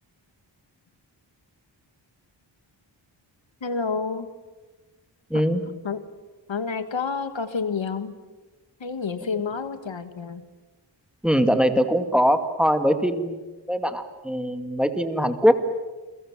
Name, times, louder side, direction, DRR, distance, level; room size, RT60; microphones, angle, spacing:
voice 1, 3.6-4.3 5.3-5.4 5.8-6.0 6.5-8.2 8.8-10.4, left 5 dB, 75° left, 10 dB, 1.9 m, -29 dB
voice 2, 5.3-5.6 11.2-13.4 13.7-15.5, equal, ahead, 8 dB, 2.2 m, -22 dB
29.0 x 23.0 x 7.5 m, 1.2 s
wide cardioid pair, 90°, 46 cm